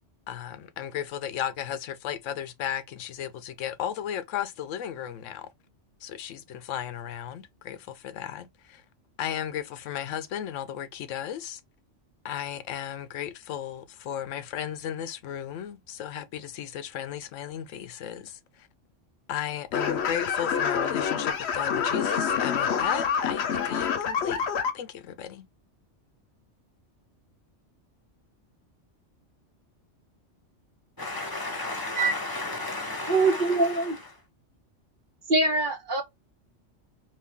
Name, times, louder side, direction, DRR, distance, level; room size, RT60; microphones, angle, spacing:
voice 1, 0.3-5.5 6.0-8.8 9.2-11.6 12.2-18.7 19.3-24.4 24.7-25.5, left 10 dB, 90° left, 1.0 m, -35 dB
sound 1, 19.7-24.7, left 7 dB, 65° left, 0.9 m, -27 dB
voice 2, 31.0-33.9, left 2 dB, 20° left, 1.0 m, -33 dB
voice 3, 33.1-34.0 35.3-36.0, right 3 dB, 50° right, 0.8 m, -23 dB
2.8 x 2.7 x 3.6 m
omnidirectional pair, 1.2 m